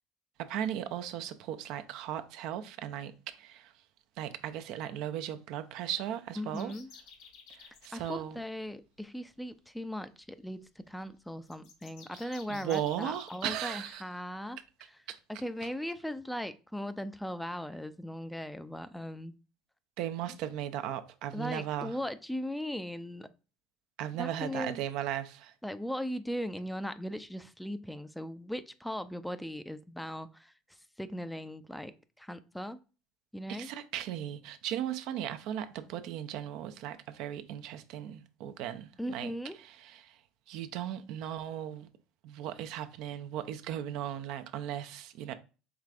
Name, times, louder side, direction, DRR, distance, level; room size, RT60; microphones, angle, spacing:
voice 1, 0.4-3.7 4.2-6.7 7.5-8.4 12.2-14.0 15.1-15.2 20.0-22.0 24.0-25.5 33.5-39.3 39.6-40.2 40.5-41.9 42.2-45.3, right 11 dB, 65° right, 0.4 m, -37 dB
voice 2, 6.4-6.9 7.9-14.6 15.3-19.3 21.3-23.3 24.2-24.8 25.6-30.5 31.0-31.9 32.2-32.8 33.3-33.7 39.0-39.6, equal, 5° left, 0.3 m, -38 dB
sound 1, 6.5-8.2 11.5-14.0, left 6 dB, 65° left, 0.9 m, -53 dB
4.8 x 3.2 x 2.4 m
supercardioid pair, 90°, 0 cm